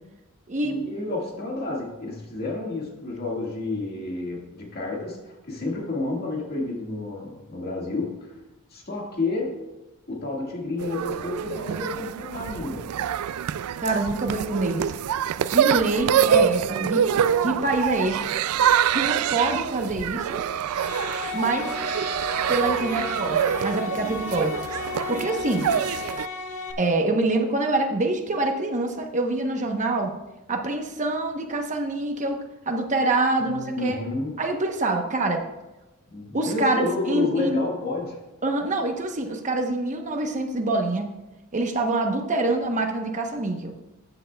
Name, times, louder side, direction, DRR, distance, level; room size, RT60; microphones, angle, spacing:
voice 1, 0.6-8.4 8.7-9.6 10.1-12.8 33.4-34.3 36.1-38.2, left 2 dB, 45° left, -2 dB, 1.9 m, -30 dB
sound 1, 10.8-26.3, right 8 dB, 90° right, 0.3 m, -25 dB
voice 2, 13.8-14.9 15.5-17.0 17.4-18.2 18.9-20.4 21.3-21.7 22.5-24.6 25.1-25.7 26.8-30.1 30.5-32.4 32.7-34.0 34.4-35.4 36.3-37.6 38.4-41.1 41.5-43.7, right 2 dB, 35° right, 3 dB, 0.9 m, -25 dB
sound 2, 20.7-26.7, left 5 dB, 75° left, 1.1 m, -34 dB
14.5 x 7.9 x 2.3 m, 1.0 s
head